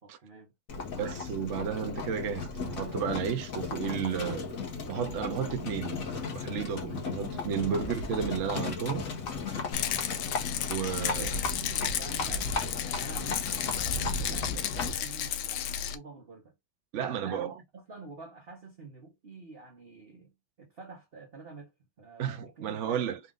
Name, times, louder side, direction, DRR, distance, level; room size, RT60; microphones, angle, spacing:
voice 1, 0.0-1.0 9.8-10.0 10.8-16.5 16.9-23.0, right 3 dB, 40° right, 0.9 m, -48 dB
Livestock farm animals working animals, 0.7-15.1, left 4 dB, 50° left, 1.3 m, -36 dB
voice 2, 1.0-4.5 4.9-6.0 6.3-9.0 10.7-11.3 16.9-17.5 22.2-23.2, right 7 dB, 85° right, 0.6 m, -32 dB
Rattle, 9.7-16.0, left 9 dB, 85° left, 1.5 m, -33 dB
4.2 x 2.5 x 3.7 m
omnidirectional pair, 2.2 m